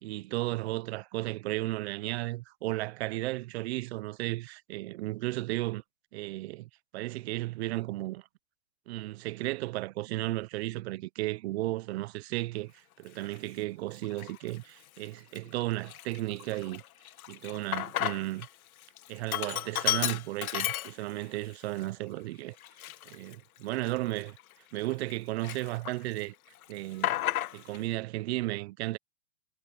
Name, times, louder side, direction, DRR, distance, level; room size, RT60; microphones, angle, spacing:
voice 1, 0.0-5.8 6.1-8.2 8.9-16.8 17.3-18.5 19.1-22.6 23.1-24.4 24.7-26.3 26.7-27.2 27.5-29.0, right 18 dB, 40° right, 1.0 m, -34 dB
Sink (filling or washing), 13.2-13.4 14.0-14.6 15.0-15.1 15.3-18.5 18.8-21.4 21.8-21.9 22.6-25.1 25.4-26.2 26.5-27.8, left 13 dB, 60° left, 2.0 m, -33 dB
hypercardioid pair, 130°, 49 cm